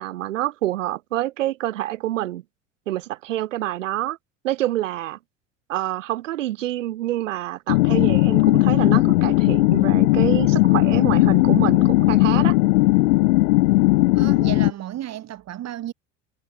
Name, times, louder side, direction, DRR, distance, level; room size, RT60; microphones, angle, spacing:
voice 1, 0.0-2.4 2.9-4.2 4.4-5.2 5.7-12.5, right 14 dB, 75° right, 3.1 m, -27 dB
sound 1, 7.7-14.7, left 20 dB, 70° left, 1.0 m, -17 dB
voice 2, 14.1-15.9, right 12 dB, 45° right, 2.9 m, -33 dB
hypercardioid pair, 75°, 38 cm